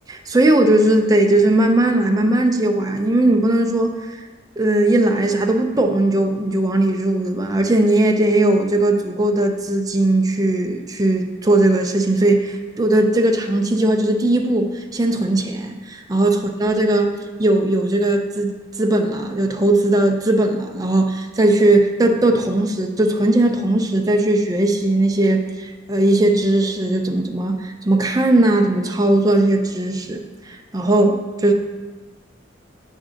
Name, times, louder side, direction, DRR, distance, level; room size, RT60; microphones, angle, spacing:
voice 1, 0.1-4.2 4.6-18.5 18.8-30.2 30.5-31.5, right 1 dB, 20° right, 3 dB, 0.5 m, -18 dB
7.4 x 3.6 x 5.1 m, 1.2 s
head